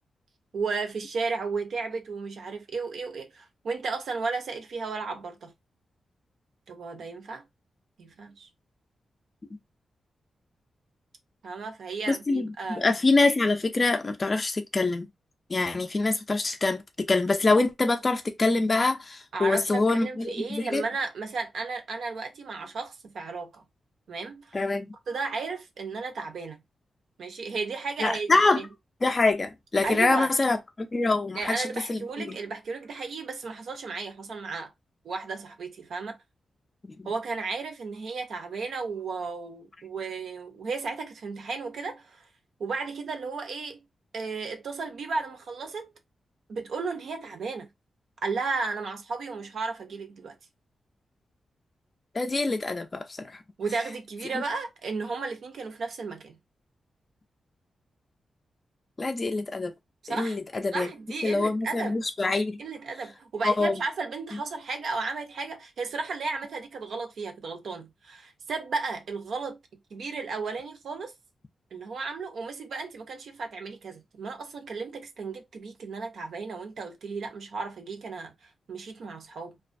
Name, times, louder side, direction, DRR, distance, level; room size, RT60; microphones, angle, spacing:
voice 1, 0.5-5.5 6.7-7.5 8.0-8.5 11.4-12.9 19.3-23.6 24.1-24.6 25.1-26.6 27.2-28.7 29.8-30.3 31.3-34.7 35.0-36.2 37.0-42.3 42.6-43.8 44.1-45.9 46.5-47.7 48.2-50.4 53.6-56.4 60.0-60.4 60.7-62.0 62.6-69.6 69.9-71.1 71.7-79.6, right 4 dB, 70° right, 0.6 m, -34 dB
voice 2, 12.1-15.1 15.5-20.8 24.5-24.9 28.0-28.6 29.0-32.4 36.8-37.1 52.1-53.4 54.3-54.4 59.0-59.7 60.1-60.9 61.2-62.6 63.4-63.8, left 3 dB, 30° left, 0.3 m, -25 dB
2.3 x 2.1 x 2.5 m
wide cardioid pair, 135°, 0 cm